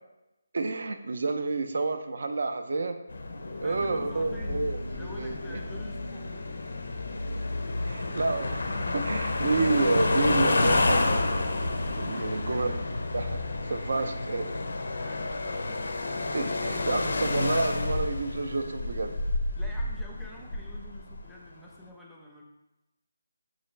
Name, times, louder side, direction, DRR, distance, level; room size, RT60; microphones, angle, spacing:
voice 1, 0.5-3.0 3.6-5.6 7.8-8.7 8.9-11.2 12.0-12.8 13.1-13.4 13.7-14.5 16.3-19.1, right 3 dB, 65° right, 8 dB, 0.4 m, -29 dB
sound 1, 3.1-21.3, left 2 dB, 75° left, 0.5 m, -30 dB
voice 2, 3.5-4.6 5.0-6.6 12.1-12.4 13.9-14.2 15.0-15.3 15.7-16.0 19.6-22.4, equal, ahead, -3 dB, 0.5 m, -47 dB
5.4 x 2.5 x 3.1 m, 0.97 s
figure-of-eight pair, 165°, 0 cm